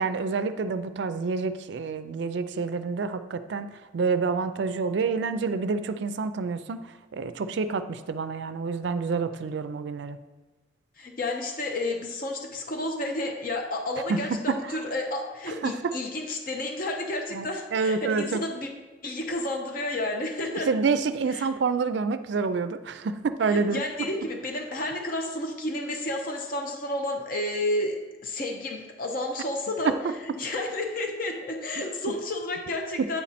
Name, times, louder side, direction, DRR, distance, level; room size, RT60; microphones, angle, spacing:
voice 1, 0.0-6.8 7.1-10.2 14.1-14.6 15.6-15.9 17.3-18.4 20.7-24.1 29.8-29.9, right 4 dB, 65° right, 11 dB, 0.4 m, -28 dB
voice 2, 11.0-18.7 19.0-20.7 21.3-21.5 23.5-29.9 30.2-33.2, left 1 dB, 45° left, 2 dB, 0.7 m, -31 dB
8.8 x 4.2 x 4.2 m, 1.3 s
head